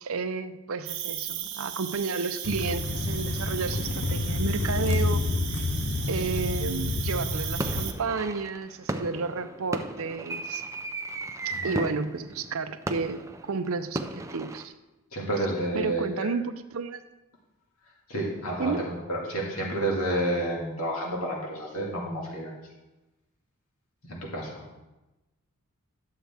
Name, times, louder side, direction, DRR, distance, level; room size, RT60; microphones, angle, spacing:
voice 1, 0.0-5.2 5.5-5.6 6.1-10.6 11.6-14.7 15.7-17.0 18.6-18.8, right 4 dB, 70° right, 11 dB, 0.6 m, -31 dB
Cricket, 0.9-7.9, right 10 dB, 55° right, 1.0 m, -36 dB
sound 1, 2.4-7.9, left 3 dB, 50° left, 0.6 m, -29 dB
sound 2, 6.8-7.2 7.6-14.7, right 2 dB, 15° right, 0.4 m, -35 dB
voice 2, 11.5-11.8 15.1-16.3 18.1-22.5 24.0-24.6, right 1 dB, 80° left, -3 dB, 1.9 m, -30 dB
11.5 x 7.7 x 3.4 m, 1.1 s
head